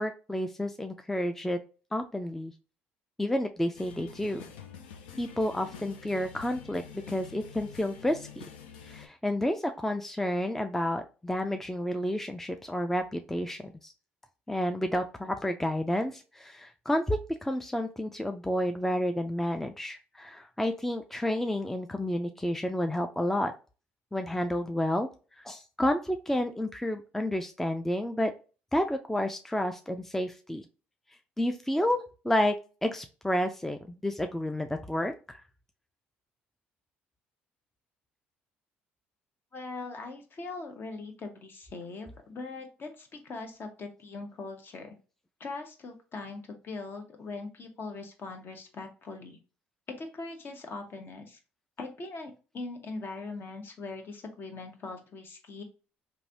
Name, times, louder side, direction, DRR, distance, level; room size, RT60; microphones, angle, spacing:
voice 1, 0.0-1.6 1.9-2.5 3.2-4.4 5.2-6.8 7.1-8.4 8.9-13.9 14.5-23.5 24.1-25.1 25.4-28.3 28.7-30.6 31.4-32.5 32.8-35.4, left 1 dB, 5° left, 6 dB, 0.4 m, -30 dB
sound 1, 3.8-9.1, left 7 dB, 90° left, 0.4 m, -47 dB
voice 2, 39.5-45.0 45.4-49.4 49.9-51.4 51.8-55.6, left 3 dB, 45° left, 5 dB, 0.9 m, -41 dB
3.1 x 2.6 x 2.6 m, 0.34 s
hypercardioid pair, 60°, 5 cm